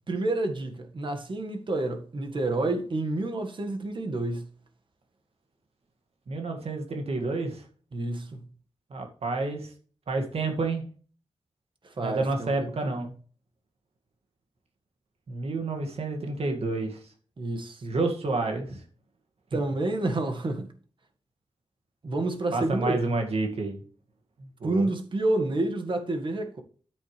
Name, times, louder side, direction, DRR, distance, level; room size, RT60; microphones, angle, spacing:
voice 1, 0.1-4.5 7.9-8.5 11.8-13.0 17.4-17.8 19.5-20.7 22.0-23.1 24.6-26.6, right 2 dB, 55° right, 1.7 m, -29 dB
voice 2, 6.3-7.7 8.9-9.7 10.1-10.8 12.0-13.1 15.3-17.0 17.8-18.8 22.5-23.8 24.4-24.9, right 3 dB, 75° right, 2.0 m, -29 dB
9.9 x 8.3 x 3.3 m
wide cardioid pair, 90°, 10 cm